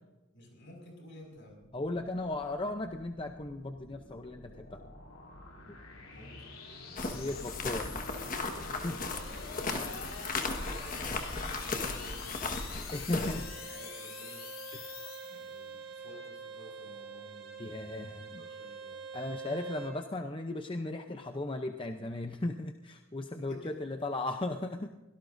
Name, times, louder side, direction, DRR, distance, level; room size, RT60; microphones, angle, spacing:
voice 1, 0.3-1.7 6.1-6.5 9.5-12.5 12.9-14.8 15.3-17.8 18.4-19.1 23.3-23.8, equal, 60° left, 1 dB, 5.8 m, -53 dB
sound 1, 1.2-15.8, left 4 dB, 80° left, 3.2 m, -46 dB
voice 2, 1.7-4.8 5.7-5.8 7.1-7.9 8.7-9.0 9.3-9.4 9.8-10.0 12.9-13.4 14.7-15.0 17.6-18.4 19.1-24.9, left 2 dB, 25° left, 5 dB, 0.6 m, -36 dB
sound 2, 7.0-13.4, left 3 dB, 40° left, 1.5 m, -36 dB
Bowed string instrument, 13.0-20.0, right 5 dB, 50° right, 2.4 m, -46 dB
24.0 x 17.5 x 2.6 m, 1.1 s
head